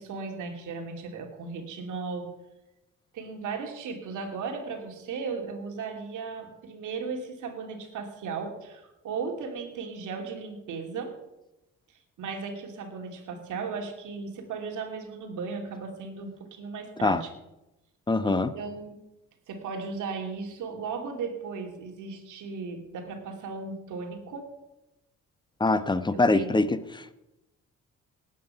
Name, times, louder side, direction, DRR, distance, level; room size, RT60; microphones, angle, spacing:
voice 1, 0.0-2.3 3.1-11.1 12.2-17.3 18.2-19.0 19.5-24.5 26.1-26.7, right 5 dB, 80° right, 2 dB, 3.0 m, -36 dB
voice 2, 18.1-18.5 25.6-27.1, left 2 dB, 15° left, 12 dB, 1.0 m, -24 dB
18.5 x 9.5 x 5.8 m, 0.96 s
cardioid pair, 90°, 30 cm